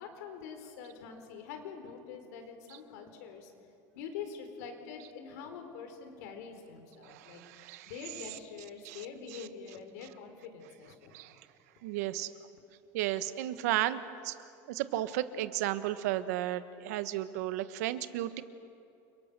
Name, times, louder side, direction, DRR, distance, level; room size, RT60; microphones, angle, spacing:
voice 1, 0.0-3.5 3.9-11.2, left 6 dB, 80° left, 5 dB, 4.0 m, -45 dB
voice 2, 7.0-8.4 8.8-9.5 11.1-11.4 11.8-12.3 12.9-18.4, right 14 dB, 90° right, 12 dB, 1.2 m, -34 dB
29.5 x 24.0 x 6.7 m, 2.6 s
cardioid pair, 175°, 8 cm